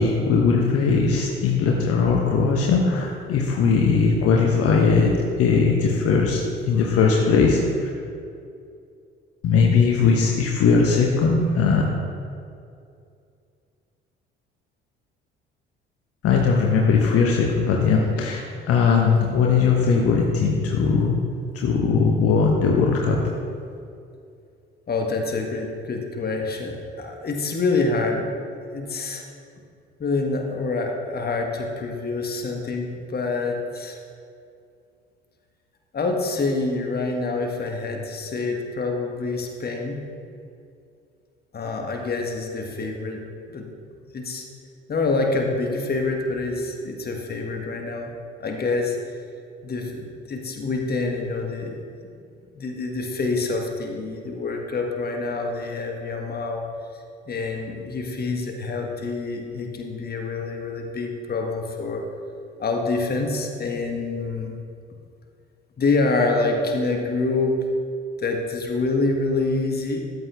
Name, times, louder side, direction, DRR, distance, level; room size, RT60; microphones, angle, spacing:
voice 1, 0.0-6.4 6.7-7.9 9.4-11.8 16.2-21.2 21.5-23.2, left 5 dB, 50° left, 0 dB, 1.1 m, -19 dB
voice 2, 24.9-28.3 28.7-29.2 30.0-34.0 35.9-40.0 41.5-43.2 43.5-43.6 44.1-44.4 44.9-48.1 48.4-49.0 49.6-51.8 52.5-56.7 57.3-62.0 62.6-64.6 65.8-67.5 68.2-70.0, left 3 dB, 30° left, 2 dB, 1.5 m, -26 dB
13.0 x 8.3 x 3.5 m, 2.4 s
figure-of-eight pair, 50°, 31 cm